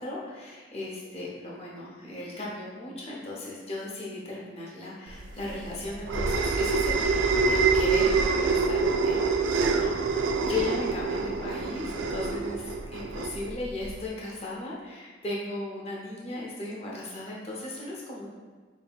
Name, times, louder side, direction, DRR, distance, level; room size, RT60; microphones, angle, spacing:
voice 1, 0.0-18.3, left 2 dB, 30° left, -5 dB, 0.6 m, -37 dB
sound 1, 5.2-14.0, right 4 dB, 85° right, 0.3 m, -26 dB
5.1 x 2.8 x 2.3 m, 1.4 s
head